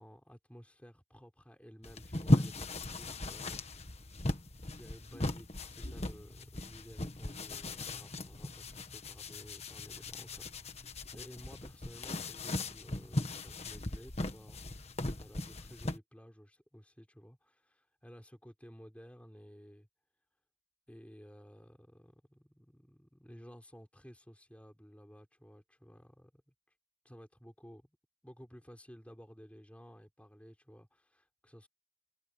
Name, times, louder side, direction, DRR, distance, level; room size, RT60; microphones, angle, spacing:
voice 1, 0.0-3.6 4.6-14.9 15.2-19.9 20.9-26.5 27.0-27.9 28.2-31.7, equal, 5° left, 5.0 m, -55 dB
sound 1, 1.8-16.0, left 1 dB, 30° left, 1.5 m, -37 dB
head